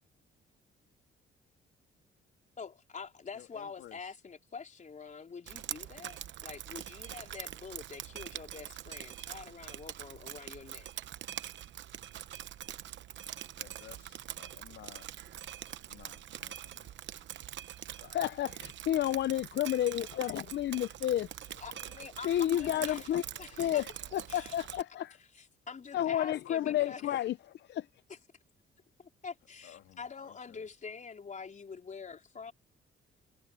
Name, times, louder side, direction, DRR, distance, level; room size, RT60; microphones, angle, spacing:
voice 1, 2.6-10.9 21.6-23.1 23.4-23.8 24.3-24.6 25.3-27.1 28.1-28.2 29.0-32.5, left 5 dB, 40° left, 4.4 m, -46 dB
voice 2, 3.3-4.1 13.6-15.1 15.9-16.9 29.6-30.7, left 12 dB, 85° left, 2.9 m, -55 dB
Drip, 5.5-24.8, right 11 dB, 70° right, 0.9 m, -44 dB
voice 3, 18.0-21.6 22.2-23.2 23.6-25.2 25.9-27.3 27.7-27.9, left 12 dB, 65° left, 0.6 m, -31 dB
cardioid pair, 90°, 20 cm